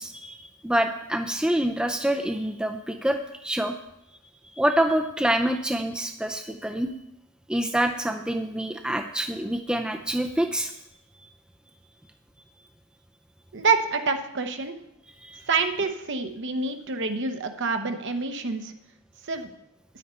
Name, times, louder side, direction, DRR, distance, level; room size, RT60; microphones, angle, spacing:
voice 1, 0.0-3.7 4.5-6.9 7.5-10.7 15.2-15.4, right 1 dB, 5° right, 5 dB, 0.4 m, -26 dB
voice 2, 13.5-14.7 15.5-18.7 19.3-19.5, right 4 dB, 55° right, 6 dB, 0.9 m, -27 dB
9.9 x 9.3 x 4.4 m, 0.84 s
head